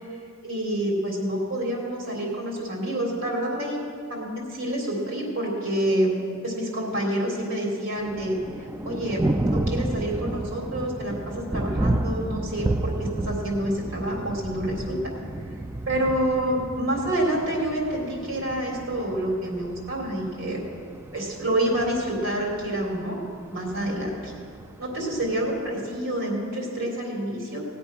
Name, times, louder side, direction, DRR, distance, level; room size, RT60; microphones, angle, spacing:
voice 1, 0.4-3.8 4.1-8.4 8.8-15.1 15.9-20.6 21.1-23.2 23.5-24.3 24.8-27.6, right 1 dB, 85° right, -1 dB, 3.5 m, -28 dB
Thunder, 8.0-26.0, right 1 dB, 10° right, 0.3 m, -32 dB
18.5 x 8.2 x 5.9 m, 2.4 s
head